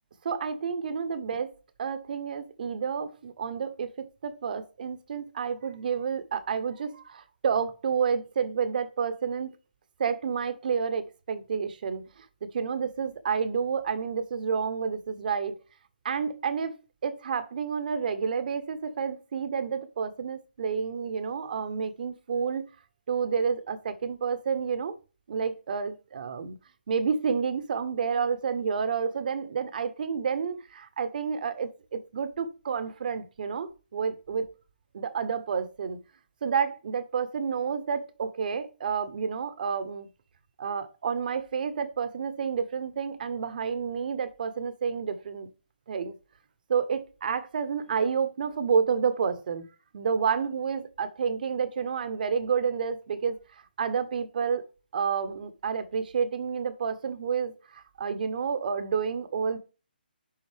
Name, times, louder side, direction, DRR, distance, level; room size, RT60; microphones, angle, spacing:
voice 1, 0.2-9.6 10.0-15.6 16.0-16.7 17.0-22.7 23.1-25.0 25.3-26.6 26.9-34.4 34.9-36.0 36.4-40.1 40.6-45.5 45.9-46.1 46.7-49.7 49.9-59.6, right 6 dB, 55° right, 1.0 m, -30 dB
10.5 x 3.9 x 3.4 m
hypercardioid pair, 145°, 5 cm